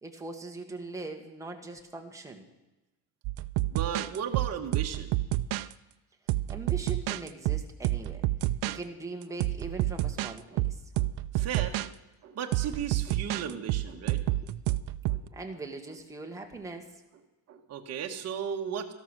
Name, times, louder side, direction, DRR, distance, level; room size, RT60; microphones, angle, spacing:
voice 1, 0.0-2.5 6.5-8.2 8.6-10.8 15.2-16.9, right 3 dB, 10° right, 2 dB, 1.6 m, -41 dB
sound 1, 3.2-5.7 6.3-8.8 9.2-11.9 12.5-15.3, right 16 dB, 65° right, 0.6 m, -29 dB
voice 2, 3.7-5.1 10.5-10.7 10.9-12.0 12.2-14.8 15.1-15.2 15.5-15.6 17.5-18.9, right 8 dB, 40° right, 3 dB, 1.3 m, -36 dB
13.5 x 12.0 x 6.1 m, 1.0 s
cardioid pair, 140°, 38 cm